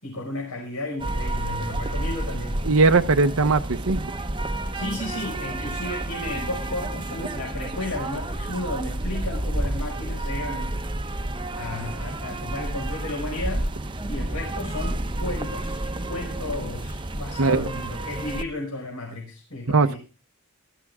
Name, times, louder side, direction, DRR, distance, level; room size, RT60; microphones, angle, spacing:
voice 1, 0.0-2.6 4.7-10.8 11.6-20.0, left 2 dB, 75° left, -1 dB, 5.6 m, -33 dB
sound 1, 1.0-18.4, right 1 dB, 20° right, 0.9 m, -30 dB
voice 2, 2.7-4.1 17.4-17.6 19.7-20.0, right 3 dB, 65° right, 7 dB, 0.9 m, -19 dB
18.5 x 13.5 x 3.6 m, 0.33 s
head